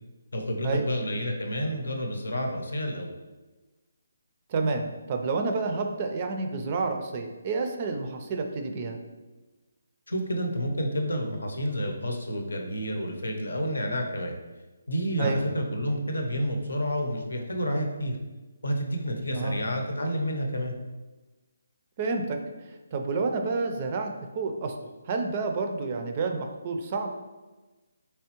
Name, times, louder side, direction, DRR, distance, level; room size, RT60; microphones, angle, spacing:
voice 1, 0.3-3.1 10.1-14.4 14.9-18.2 18.6-20.7, equal, 85° left, 3 dB, 0.7 m, -29 dB
voice 2, 4.5-9.0 15.2-15.4 19.3-19.6 22.0-22.4 22.9-24.1 24.3-24.7 25.1-27.1, right 4 dB, 35° right, 4 dB, 0.4 m, -29 dB
3.4 x 3.0 x 2.9 m, 1.2 s
figure-of-eight pair, 155°, 0 cm